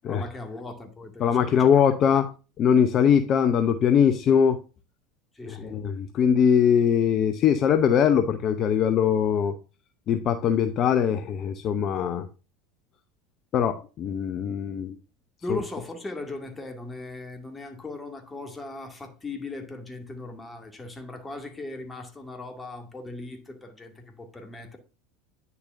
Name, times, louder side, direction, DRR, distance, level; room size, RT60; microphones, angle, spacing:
voice 1, 0.1-1.7 2.1-2.2 5.3-5.8 15.4-24.8, left 2 dB, 15° left, 2.2 m, -38 dB
voice 2, 1.2-2.2 2.6-4.6 5.5-9.5 10.1-12.3 13.5-15.0 15.5-15.6, left 8 dB, 45° left, 0.7 m, -21 dB
9.8 x 6.9 x 2.6 m
hypercardioid pair, 80°, 0 cm